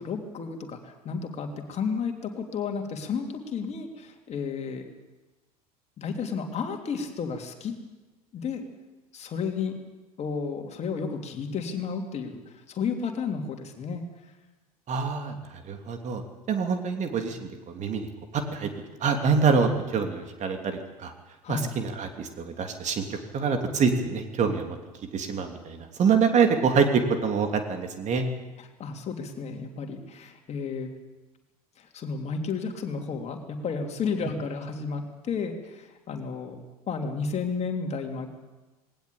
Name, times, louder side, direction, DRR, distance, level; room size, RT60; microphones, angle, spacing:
voice 1, 0.0-4.8 6.0-7.7 8.3-8.7 9.1-9.8 10.2-12.4 12.7-14.0 21.4-21.7 28.8-30.9 31.8-36.6 36.9-38.3, left 5 dB, 35° left, 4 dB, 3.3 m, -32 dB
voice 2, 14.9-16.2 16.5-18.7 19.0-21.1 21.5-24.8 25.1-28.3, right 5 dB, 35° right, 5 dB, 3.0 m, -26 dB
20.0 x 18.5 x 8.6 m, 1.2 s
figure-of-eight pair, 75°, 20 cm